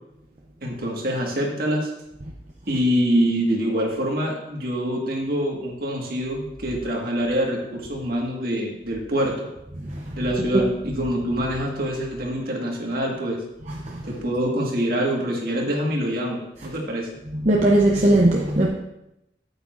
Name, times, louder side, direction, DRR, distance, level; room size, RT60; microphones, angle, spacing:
voice 1, 0.6-1.9 2.7-9.4 10.2-13.4 14.0-17.1, equal, 55° right, -1 dB, 1.7 m, -25 dB
voice 2, 9.8-10.2 10.5-10.6 13.7-14.0 17.3-18.7, right 1 dB, 40° right, -2 dB, 0.8 m, -19 dB
8.8 x 8.4 x 2.6 m, 0.87 s
head